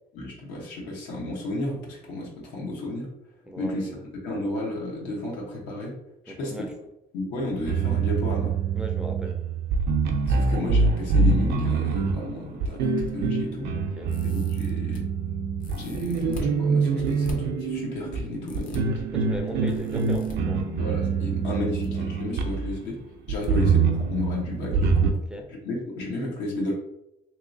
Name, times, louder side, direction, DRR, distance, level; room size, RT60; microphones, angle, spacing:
voice 1, 0.1-3.1 3.6-3.9 4.2-5.9 6.2-6.7 7.1-8.6 10.2-13.7 14.2-15.1 15.7-18.9 20.8-23.0 23.3-25.2 25.6-26.7, left 2 dB, 85° left, -2 dB, 1.0 m, -32 dB
voice 2, 3.5-4.0 6.3-6.7 8.8-9.4 13.7-14.2 19.1-20.7 23.3-23.6 25.1-25.5, right 1 dB, 5° right, 2 dB, 0.4 m, -37 dB
sound 1, 7.4-22.8 23.3-25.1, right 4 dB, 80° right, 0.4 m, -25 dB
sound 2, 14.1-15.0 15.6-16.5 17.0-17.3 18.4-18.8 19.7-20.3 21.5-21.9 22.1-22.2 23.4-23.5 23.9-24.0, left 1 dB, 50° left, 0.6 m, -39 dB
3.0 x 2.9 x 2.6 m, 0.87 s
cardioid pair, 110°, 17 cm